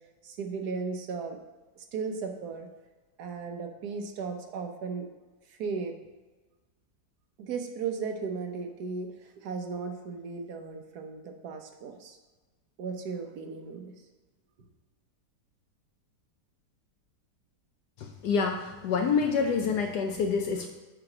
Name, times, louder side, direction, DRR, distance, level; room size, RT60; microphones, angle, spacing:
voice 1, 0.2-1.4 1.8-2.7 3.2-5.1 5.5-6.0 7.4-12.2 12.8-13.9, right 5 dB, 70° right, 4 dB, 1.3 m, -36 dB
voice 2, 18.2-20.7, left 5 dB, 75° left, 3 dB, 1.2 m, -27 dB
7.7 x 3.0 x 5.8 m, 1.3 s
omnidirectional pair, 1.8 m